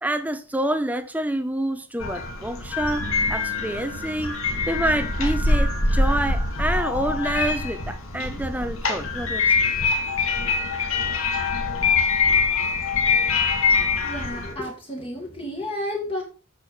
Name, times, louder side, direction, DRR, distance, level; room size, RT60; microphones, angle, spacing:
voice 1, 0.0-4.4 4.7-9.6, right 1 dB, 5° right, 0.6 m, -27 dB
sound 1, 2.0-14.5, left 4 dB, 70° left, 1.9 m, -24 dB
sound 2, 3.0-10.7, right 2 dB, 75° right, 1.5 m, -46 dB
voice 2, 14.0-16.2, left 1 dB, 25° left, 1.8 m, -31 dB
8.0 x 6.7 x 4.6 m
head